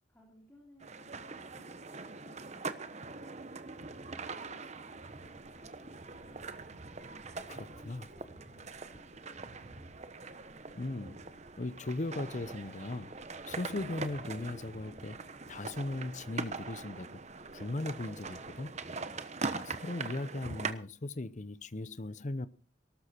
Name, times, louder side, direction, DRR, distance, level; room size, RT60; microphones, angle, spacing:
voice 1, 0.1-6.8 7.7-9.9, equal, 10° left, 3.6 m, -62 dB
sound 1, 0.8-20.7, right 4 dB, 35° right, 1.1 m, -42 dB
sound 2, 5.1-19.5, left 1 dB, 60° left, 1.6 m, -64 dB
voice 2, 7.5-8.1 10.7-11.2 11.6-13.1 13.5-15.2 15.5-17.2 17.5-18.8 19.4-22.5, left 2 dB, 40° left, 0.7 m, -38 dB
18.5 x 13.0 x 4.4 m
head